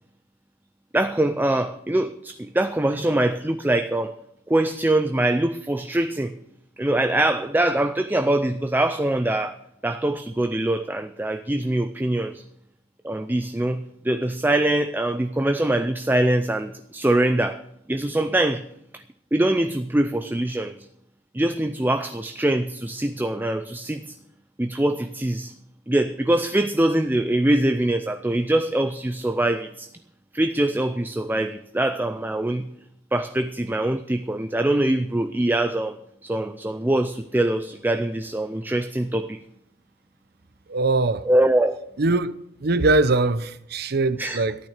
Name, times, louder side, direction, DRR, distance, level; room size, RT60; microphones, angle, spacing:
voice 1, 0.9-4.1 4.5-6.3 6.8-9.6 9.8-12.4 13.0-17.6 17.9-18.6 18.9-19.0 19.3-20.8 21.3-24.1 24.6-25.5 25.9-29.9 30.3-32.7 33.1-36.0 36.2-39.4 41.2-41.8 44.2-44.4, right 1 dB, 10° right, 0.5 m, -23 dB
voice 2, 40.7-41.2 42.0-42.3 42.6-44.5, right 2 dB, 60° right, 0.7 m, -21 dB
14.0 x 9.2 x 6.6 m
head